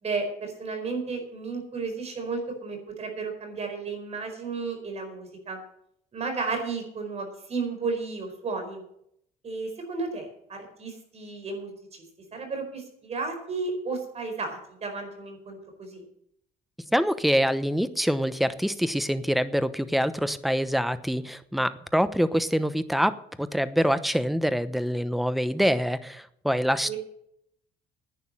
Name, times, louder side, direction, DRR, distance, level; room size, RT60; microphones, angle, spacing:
voice 1, 0.0-5.6 6.1-8.8 9.4-12.0 12.3-16.1 26.8-27.0, right 4 dB, 40° right, 4 dB, 4.6 m, -33 dB
voice 2, 16.9-26.9, equal, ahead, 13 dB, 0.9 m, -25 dB
11.0 x 9.4 x 7.6 m, 0.72 s
cardioid pair, 110°, 17 cm